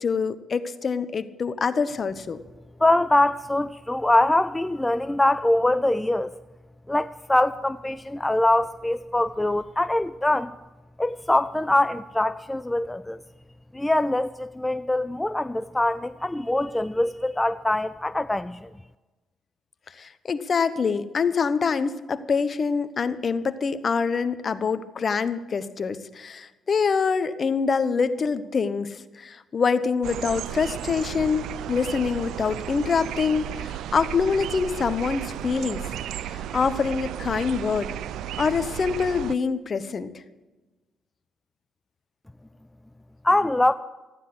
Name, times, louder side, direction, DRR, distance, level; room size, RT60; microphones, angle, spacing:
voice 1, 0.0-2.4 20.0-35.8 36.2-37.9 38.4-40.1, left 5 dB, 45° left, 12 dB, 1.0 m, -25 dB
voice 2, 2.8-6.3 6.9-10.5 11.0-13.2 13.7-18.7 43.2-43.7, left 1 dB, 10° left, 12 dB, 0.4 m, -23 dB
sound 1, 30.0-39.3, right 11 dB, 80° right, 0.4 m, -34 dB
14.5 x 9.9 x 7.8 m, 1.2 s
cardioid pair, 90°, 0 cm